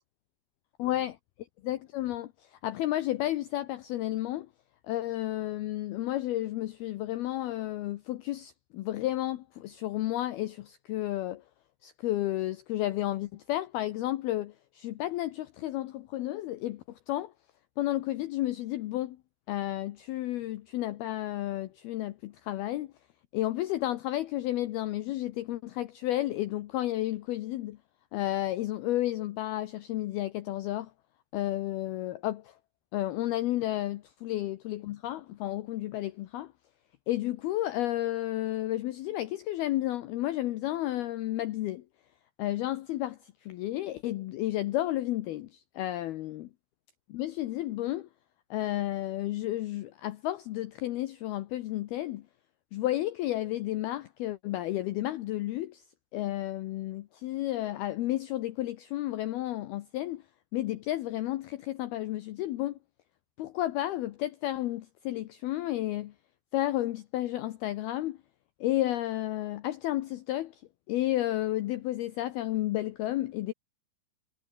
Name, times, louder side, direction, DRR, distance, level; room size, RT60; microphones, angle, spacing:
voice 1, 0.8-1.1 1.6-4.5 4.9-11.4 11.8-17.3 17.8-19.2 19.5-22.9 23.3-27.8 28.1-30.9 31.3-32.5 32.9-36.5 37.1-41.8 42.4-46.5 47.1-48.1 48.5-52.3 52.7-55.8 56.1-60.2 60.5-62.8 63.4-66.1 66.5-68.2 68.6-70.6 70.9-73.5, left 15 dB, 90° left, 2.2 m, -32 dB
omnidirectional pair, 5.8 m